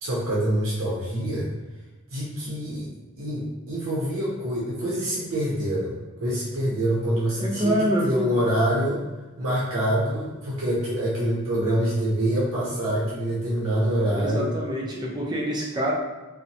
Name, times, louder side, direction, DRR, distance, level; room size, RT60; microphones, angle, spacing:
voice 1, 0.0-1.5 2.1-2.9 3.2-9.0 9.4-14.5, right 1 dB, 75° right, -6 dB, 0.6 m, -26 dB
voice 2, 7.4-8.2 14.1-15.9, equal, 20° right, -3 dB, 0.4 m, -26 dB
2.7 x 2.1 x 2.7 m, 1.1 s
head